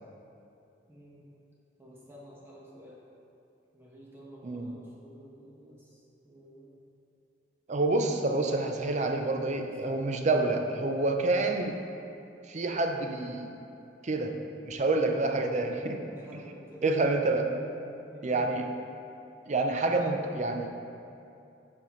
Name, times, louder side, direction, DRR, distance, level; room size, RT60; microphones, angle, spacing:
voice 1, 0.9-1.3 1.8-3.0 3.7-6.8 8.4-8.7 9.8-10.0 16.1-17.0 18.0-18.7, equal, 15° right, -5 dB, 1.3 m, -51 dB
voice 2, 4.4-4.8 7.7-11.8 12.5-13.5 14.0-14.4 14.7-16.0 16.3-16.4 16.8-17.5 18.2-18.7 19.5-20.7, right 2 dB, 40° right, 4 dB, 0.5 m, -28 dB
12.0 x 4.3 x 3.1 m, 2.7 s
head